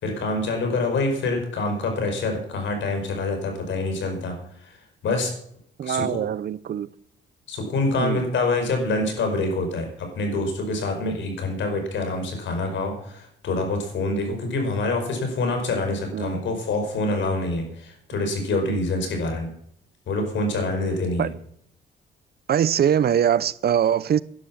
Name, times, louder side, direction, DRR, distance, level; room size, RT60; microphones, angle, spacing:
voice 1, 0.0-4.8 5.0-5.3 5.8-6.2 7.5-19.5 20.1-21.3, left 2 dB, 70° left, 5.1 m, -26 dB
voice 2, 5.8-6.9 8.0-8.3 16.1-16.5 18.7-18.8 21.2-21.3 22.5-24.2, right 9 dB, 50° right, 0.6 m, -22 dB
11.5 x 10.5 x 7.2 m
cardioid pair, 90°, 20 cm